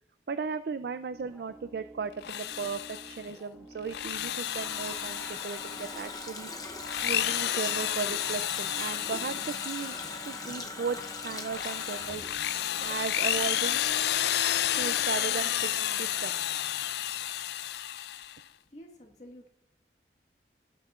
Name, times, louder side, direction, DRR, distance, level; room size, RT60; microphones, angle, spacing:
voice 1, 0.3-6.5 7.0-10.0 10.2-12.2 12.8-13.8 14.8-16.4, right 5 dB, 65° right, 11 dB, 0.4 m, -36 dB
sound 1, 1.1-13.7, right 2 dB, ahead, 1.5 m, -52 dB
Drill, 2.1-3.3 3.8-6.2 6.7-10.5 10.9-18.4, left 12 dB, 70° left, 0.4 m, -31 dB
Water tap faucet, 3.9-13.5 13.8-13.9, left 3 dB, 20° left, 0.7 m, -41 dB
voice 2, 18.0-19.5, equal, 40° left, 1 dB, 1.9 m, -52 dB
16.0 x 9.2 x 2.4 m, 0.75 s
head